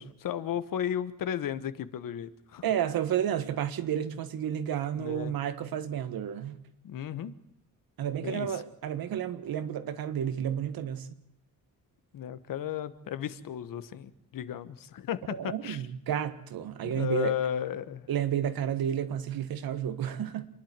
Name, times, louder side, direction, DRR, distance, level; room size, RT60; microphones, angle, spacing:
voice 1, 0.0-2.6 5.0-5.3 6.8-7.3 8.2-8.6 12.1-15.8 16.8-18.1, left 10 dB, 70° left, 1.3 m, -34 dB
voice 2, 2.6-6.6 8.0-11.1 15.4-17.4 18.1-20.5, right 9 dB, 85° right, 1.7 m, -31 dB
27.5 x 11.0 x 9.0 m
wide cardioid pair, 170°, 35 cm